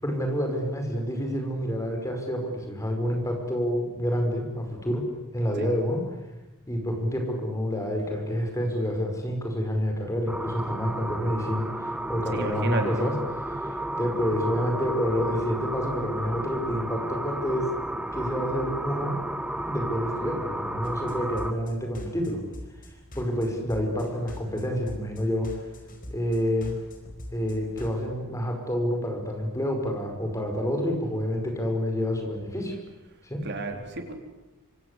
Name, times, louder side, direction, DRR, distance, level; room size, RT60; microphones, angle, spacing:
voice 1, 0.0-5.1 5.3-6.0 6.7-13.2 13.6-13.7 14.0-17.7 18.1-19.2 19.7-22.4 23.2-25.6 26.1-26.8 27.3-32.8 33.2-33.4, equal, 15° left, 3 dB, 5.5 m, -28 dB
sound 1, 10.3-21.5, right 1 dB, 5° right, 1.2 m, -32 dB
voice 2, 12.3-13.1 33.4-34.2, right 2 dB, 50° right, 5 dB, 4.0 m, -32 dB
sound 2, 20.8-28.0, left 1 dB, 40° left, 4.9 m, -44 dB
26.0 x 25.5 x 8.4 m, 1.1 s
head